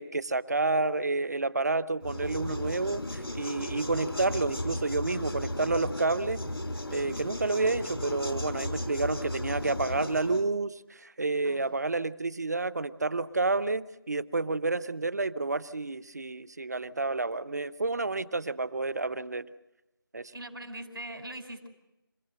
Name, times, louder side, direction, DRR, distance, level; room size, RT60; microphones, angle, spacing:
voice 1, 0.0-6.4 6.9-19.5 20.1-20.3, right 3 dB, 45° right, 15 dB, 0.7 m, -30 dB
sound 1, 2.0-10.4, left 1 dB, 90° left, 2.6 m, -35 dB
voice 2, 20.3-21.7, right 1 dB, 80° right, 5 dB, 4.6 m, -41 dB
27.5 x 15.5 x 7.7 m, 0.96 s
figure-of-eight pair, 170°, 12 cm